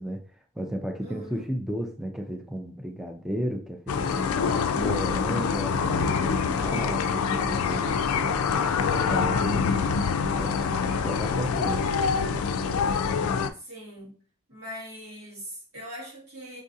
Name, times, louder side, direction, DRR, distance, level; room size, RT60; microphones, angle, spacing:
voice 1, 0.0-4.4 4.7-9.7 10.4-11.9, equal, ahead, 0.4 m, -34 dB
voice 2, 1.0-1.4 6.3-6.9 9.1-9.6 13.5-14.1 14.5-16.6, equal, 90° right, 1.6 m, -42 dB
sound 1, 3.9-13.5, left 5 dB, 90° left, 0.4 m, -25 dB
5.4 x 2.4 x 2.6 m
head